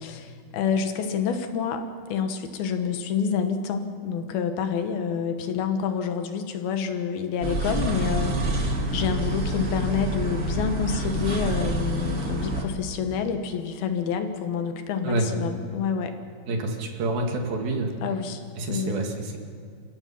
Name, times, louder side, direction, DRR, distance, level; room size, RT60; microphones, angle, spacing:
voice 1, 0.0-1.8 2.1-16.1 18.0-18.4 18.7-18.9, left 6 dB, 75° left, 7 dB, 3.0 m, -28 dB
sound 1, 7.4-12.6, right 1 dB, 45° right, 1.1 m, -27 dB
voice 2, 16.5-18.0 18.6-19.4, right 2 dB, 65° right, 2 dB, 3.7 m, -27 dB
29.0 x 16.5 x 5.6 m, 2.3 s
omnidirectional pair, 4.6 m